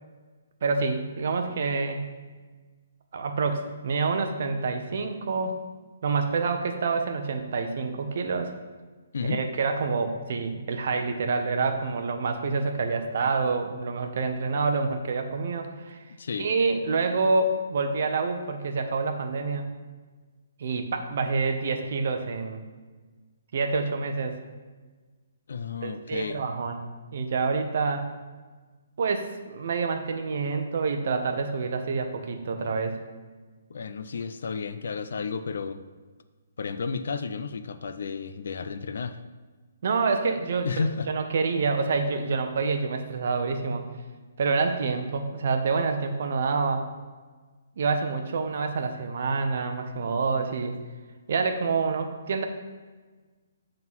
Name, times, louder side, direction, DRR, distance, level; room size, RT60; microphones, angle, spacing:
voice 1, 0.6-2.1 3.1-5.5 6.0-8.5 9.2-16.0 16.4-19.8 20.6-22.6 23.5-24.4 25.8-26.8 27.1-28.1 29.0-33.0 39.8-43.8 44.4-46.9 47.8-50.8 51.3-52.4, right 4 dB, 45° right, 6 dB, 0.7 m, -27 dB
voice 2, 16.1-16.5 25.5-26.4 33.7-35.8 36.6-39.2 40.6-41.1, left 5 dB, 60° left, 11 dB, 0.4 m, -32 dB
7.5 x 3.8 x 6.1 m, 1.4 s
hypercardioid pair, 175°, 0 cm